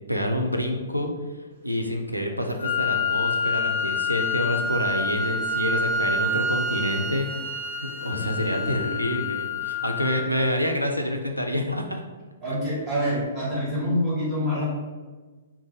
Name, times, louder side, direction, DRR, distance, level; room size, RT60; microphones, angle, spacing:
voice 1, 0.1-1.1 1.6-12.0, left 1 dB, 90° right, 3 dB, 0.4 m, -27 dB
Wind instrument woodwind instrument, 2.6-10.5, left 3 dB, 45° right, 0.8 m, -27 dB
voice 2, 8.1-8.9 12.4-14.7, equal, 15° right, -9 dB, 1.4 m, -27 dB
2.6 x 2.1 x 3.8 m, 1.3 s
figure-of-eight pair, 115°, 0 cm